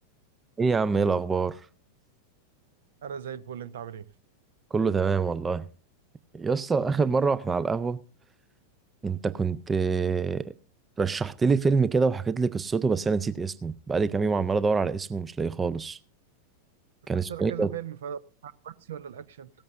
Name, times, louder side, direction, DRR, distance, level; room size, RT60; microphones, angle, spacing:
voice 1, 0.6-1.6 4.7-5.7 6.3-8.0 9.0-10.4 11.0-16.0 17.1-17.7, right 4 dB, 15° right, 0.4 m, -25 dB
voice 2, 3.0-4.1 17.3-19.5, right 9 dB, 60° right, 0.6 m, -38 dB
16.5 x 14.0 x 2.5 m
figure-of-eight pair, 90°, 0 cm